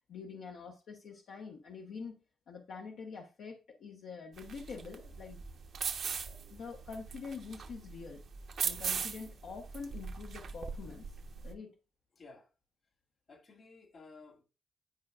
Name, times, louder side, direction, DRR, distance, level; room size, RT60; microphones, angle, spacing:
voice 1, 0.1-2.2 2.5-5.4 5.9-6.0 6.2-8.2 8.6-11.1 11.4-11.7, left 5 dB, 75° left, 1.1 m, -46 dB
sound 1, 4.4-11.5, right 6 dB, 70° right, 1.1 m, -40 dB
voice 2, 12.2-12.5 13.3-14.4, left 3 dB, 55° left, 2.0 m, -54 dB
10.5 x 4.9 x 2.5 m
hypercardioid pair, 45°, 0 cm